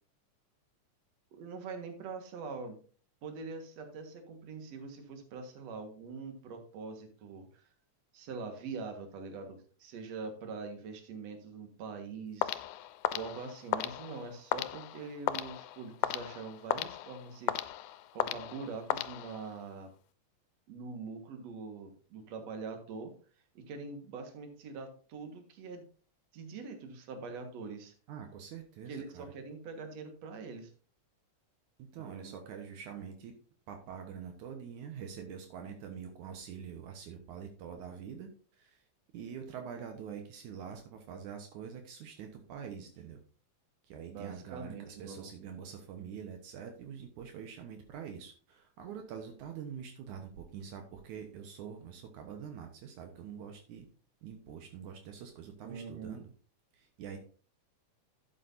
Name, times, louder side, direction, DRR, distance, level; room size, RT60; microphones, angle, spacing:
voice 1, 1.3-2.8 3.2-7.7 8.1-12.6 13.1-17.6 18.1-19.9 20.7-23.1 23.5-25.9 26.3-27.9 28.9-30.7 31.9-32.3 44.1-45.3 55.6-56.2, right 4 dB, 60° right, 5 dB, 2.7 m, -43 dB
sound 1, 12.4-19.7, left 13 dB, 85° left, 2.1 m, -36 dB
voice 2, 28.1-29.3 31.9-33.3 33.7-38.8 39.1-43.2 43.8-53.9 54.2-56.3 56.7-57.2, right 7 dB, 80° right, 4 dB, 2.6 m, -45 dB
12.0 x 8.3 x 2.7 m, 0.39 s
omnidirectional pair, 3.5 m